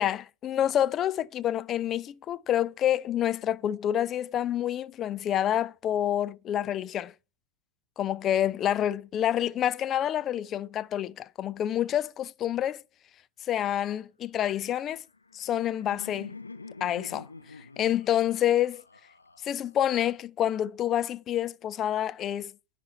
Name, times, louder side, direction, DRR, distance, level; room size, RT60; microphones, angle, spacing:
voice 1, 0.0-7.1 8.0-12.8 13.5-15.0 15.3-16.3 16.8-17.3 17.8-18.8 19.4-22.5, left 11 dB, 30° left, 0.4 m, -28 dB
Laughter, 15.0-20.0, left 3 dB, 80° left, 0.7 m, -47 dB
10.5 x 4.2 x 5.5 m
figure-of-eight pair, 90°, 0 cm